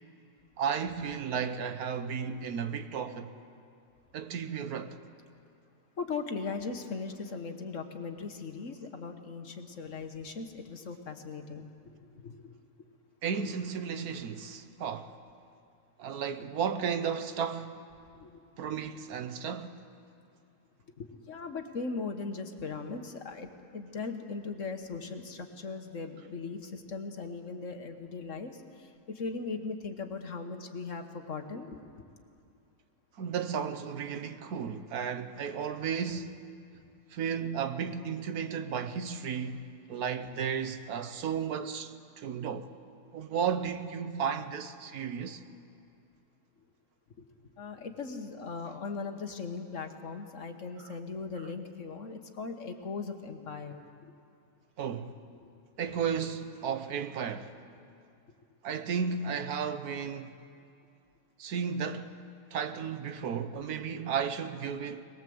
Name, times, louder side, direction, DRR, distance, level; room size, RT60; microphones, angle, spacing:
voice 1, 0.6-3.3 4.1-5.0 13.2-15.1 16.0-17.8 18.6-19.8 33.2-36.3 37.1-42.7 43.1-45.4 50.8-50.9 54.8-55.1 55.8-57.5 58.6-60.3 61.4-62.2 62.5-65.0, right 7 dB, 75° right, 1.4 m, -34 dB
voice 2, 6.0-12.4 18.2-18.4 21.0-31.8 47.6-53.8 55.4-55.5, left 4 dB, 55° left, 1.6 m, -39 dB
21.5 x 20.5 x 7.9 m
omnidirectional pair, 1.6 m